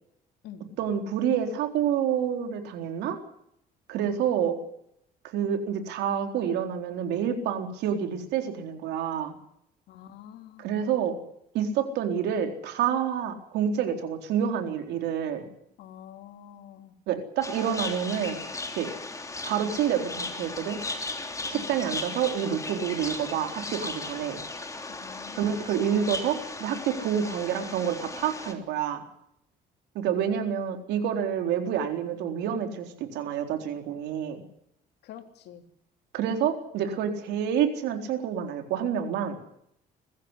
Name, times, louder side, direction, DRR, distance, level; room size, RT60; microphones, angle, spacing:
voice 1, 0.8-3.2 3.9-4.6 5.3-9.3 10.6-11.1 11.5-15.5 17.1-18.4 18.7-18.9 19.4-20.8 21.5-24.4 25.4-29.1 29.9-34.4 36.1-39.4, right 8 dB, 85° right, 5 dB, 4.0 m, -28 dB
voice 2, 9.9-10.7 11.1-11.2 15.8-16.9 21.5-21.7 25.0-25.7 30.2-30.4 35.0-35.6, left 10 dB, 80° left, 6 dB, 3.3 m, -47 dB
sound 1, 17.4-28.5, left 3 dB, 20° left, 3.4 m, -36 dB
22.0 x 15.0 x 10.0 m, 0.74 s
cardioid pair, 110°, 17 cm